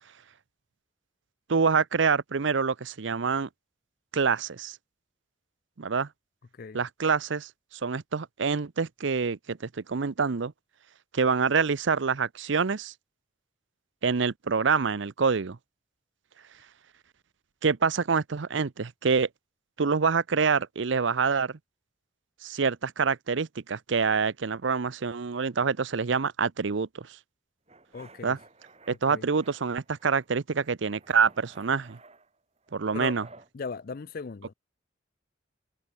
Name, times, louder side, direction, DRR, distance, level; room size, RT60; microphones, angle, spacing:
voice 1, 1.5-3.5 4.1-4.8 5.8-6.1 6.7-7.5 7.8-10.5 11.1-12.9 14.0-15.6 17.6-19.3 19.8-21.6 22.4-27.1 28.2-28.4 28.9-32.0 32.7-33.3, right 5 dB, 70° right, 0.6 m, -26 dB
sound 1, 27.7-29.0 29.4-30.3 30.6-33.5, right 3 dB, 35° right, 6.0 m, -55 dB
voice 2, 27.9-28.4 29.1-29.3 32.9-33.2 33.5-34.5, left 5 dB, 45° left, 0.4 m, -38 dB
head